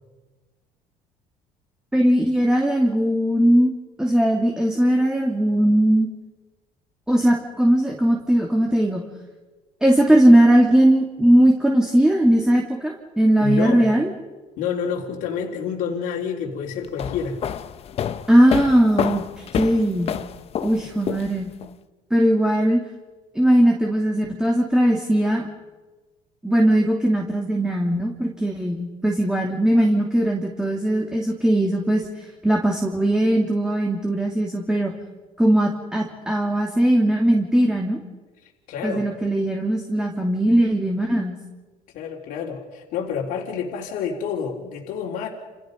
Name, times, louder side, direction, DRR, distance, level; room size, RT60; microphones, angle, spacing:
voice 1, 1.9-3.7 4.0-6.1 7.1-9.0 9.8-14.1 18.3-20.1 20.6-21.5 22.1-22.8 23.3-25.5 26.4-32.0 32.4-34.9 35.4-38.0 38.8-41.3, right 1 dB, 5° right, 0 dB, 2.9 m, -19 dB
voice 2, 13.4-13.9 14.6-17.4 38.4-39.1 41.9-45.3, left 6 dB, 70° left, -2 dB, 3.8 m, -28 dB
sound 1, 16.8-21.7, left 9 dB, 45° left, 1.2 m, -28 dB
29.5 x 29.0 x 5.3 m, 1.3 s
cardioid pair, 125°, 15 cm